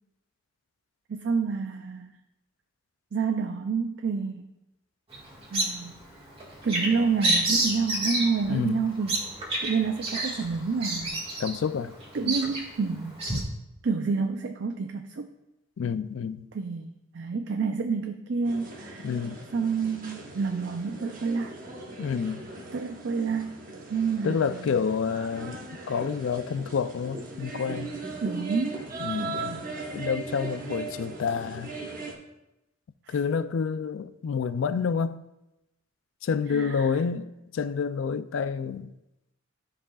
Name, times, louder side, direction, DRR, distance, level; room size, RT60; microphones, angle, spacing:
voice 1, 1.1-2.1 3.1-4.5 5.5-5.9 6.6-9.3 9.6-11.2 12.1-13.5 13.8-15.3 16.5-19.1 19.5-21.6 22.0-22.1 22.7-23.6 23.9-24.9 28.2-29.7 33.1-33.2 36.5-37.0, right 5 dB, 60° right, 0.4 m, -29 dB
Bird vocalization bird call bird song, 5.1-13.4, right 2 dB, 30° right, 1.7 m, -30 dB
voice 2, 8.4-8.8 11.4-11.9 12.2-12.4 15.8-16.5 19.0-19.4 22.0-22.5 24.2-27.9 29.0-29.6 29.9-31.7 33.1-35.2 36.2-38.9, left 6 dB, 70° left, 0.3 m, -29 dB
sound 1, 18.4-32.1, right 3 dB, 45° right, 1.0 m, -39 dB
12.5 x 4.9 x 2.4 m
head